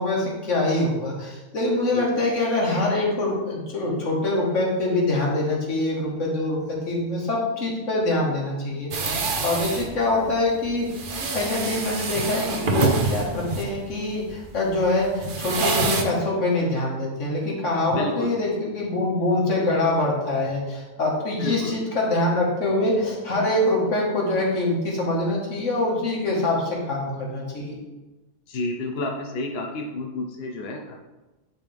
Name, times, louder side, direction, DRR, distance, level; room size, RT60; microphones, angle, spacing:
voice 1, 0.0-10.9 11.2-27.8, left 2 dB, 80° left, -3 dB, 2.0 m, -24 dB
sound 1, 8.9-16.0, right 4 dB, 50° right, 0.8 m, -27 dB
voice 2, 17.9-18.3 21.4-21.8 28.5-30.9, left 2 dB, 60° left, 1 dB, 0.9 m, -31 dB
10.0 x 4.0 x 3.4 m, 1.1 s
omnidirectional pair, 1.3 m